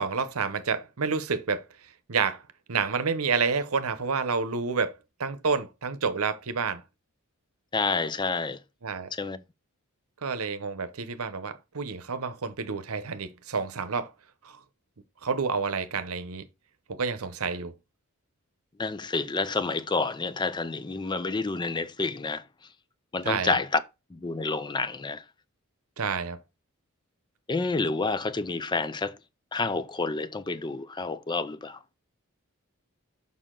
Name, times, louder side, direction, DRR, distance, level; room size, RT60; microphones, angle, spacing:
voice 1, 0.0-1.6 2.1-2.4 2.7-4.9 5.2-6.8 8.8-9.1 10.2-14.1 14.4-14.5 15.2-16.5 16.9-17.7 23.2-23.6 26.0-26.4, right 5 dB, 75° right, 0.8 m, -29 dB
voice 2, 7.7-8.6 9.1-9.4 18.8-22.4 23.1-23.8 24.1-25.2 27.5-29.2 29.5-31.8, left 3 dB, 20° left, 0.4 m, -29 dB
6.5 x 5.5 x 3.8 m
head